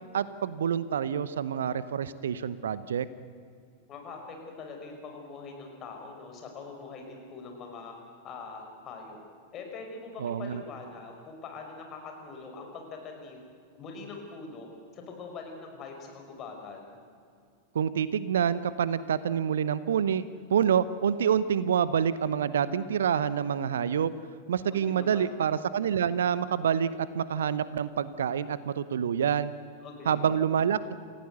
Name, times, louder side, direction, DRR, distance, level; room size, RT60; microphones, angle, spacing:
voice 1, 0.1-3.1 10.2-10.6 17.7-20.2 20.5-24.1 24.5-29.5 30.1-31.0, right 8 dB, 65° right, 16 dB, 0.8 m, -27 dB
voice 2, 3.9-8.0 8.2-9.2 9.5-13.4 13.7-14.7 14.9-17.0 24.9-25.3 29.8-30.3, left 4 dB, 30° left, 2 dB, 5.5 m, -43 dB
28.5 x 16.0 x 8.0 m, 2.3 s
figure-of-eight pair, 90°, 0 cm